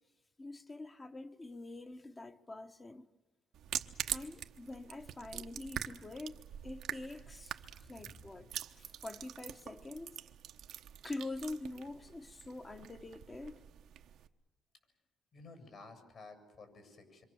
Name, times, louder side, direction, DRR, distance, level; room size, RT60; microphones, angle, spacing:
voice 1, 0.4-3.1 4.0-10.1 11.0-13.6, left 2 dB, 25° left, 1.3 m, -45 dB
sound 1, 3.5-14.3, right 10 dB, 80° right, 1.0 m, -45 dB
voice 2, 7.8-8.5 15.3-17.2, left 3 dB, 60° left, 7.3 m, -54 dB
26.5 x 25.5 x 7.2 m
cardioid pair, 90°, 0 cm